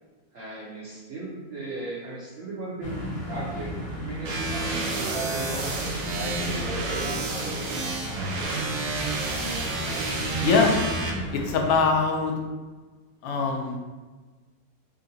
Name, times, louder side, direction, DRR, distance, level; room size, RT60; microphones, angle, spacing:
voice 1, 0.3-3.7 4.0-7.8, right 2 dB, 60° right, -8 dB, 0.8 m, -37 dB
sound 1, 2.8-11.8, equal, 10° left, 0.9 m, -35 dB
sound 2, 4.2-11.1, right 3 dB, 80° right, 1.2 m, -30 dB
voice 2, 11.3-12.3 13.2-13.8, left 5 dB, 85° left, 1 dB, 1.3 m, -22 dB
3.7 x 2.5 x 2.7 m, 1.3 s
omnidirectional pair, 2.0 m